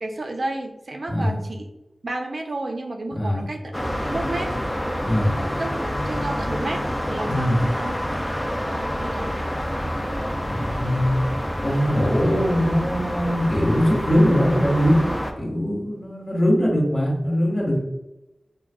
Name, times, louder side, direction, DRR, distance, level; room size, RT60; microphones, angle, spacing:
voice 1, 0.0-1.7 2.0-3.6 4.1-4.5 5.6-6.8 7.1-7.9 9.0-9.5, right 2 dB, 65° right, 3 dB, 0.5 m, -31 dB
voice 2, 3.1-3.4 5.0-5.3 7.2-7.6 10.5-11.2 11.6-15.0 15.4-17.8, equal, 35° left, -5 dB, 1.2 m, -21 dB
sound 1, 3.7-15.3, equal, 5° left, 0.5 m, -27 dB
5.7 x 2.3 x 2.3 m, 0.95 s
wide cardioid pair, 85°, 0 cm